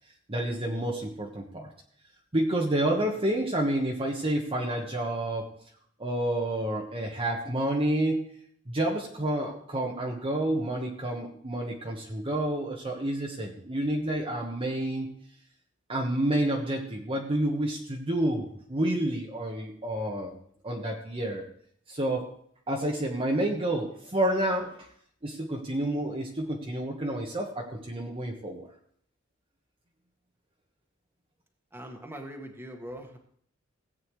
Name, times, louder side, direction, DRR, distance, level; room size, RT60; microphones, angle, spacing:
voice 1, 0.3-1.7 2.3-5.5 6.0-8.3 8.7-15.1 15.9-20.3 20.6-21.5 21.9-22.3 22.7-24.9 25.2-28.7, right 1 dB, 30° right, -1 dB, 1.2 m, -29 dB
voice 2, 31.7-33.2, equal, 10° right, 2 dB, 1.6 m, -41 dB
17.5 x 8.6 x 3.2 m, 0.63 s
head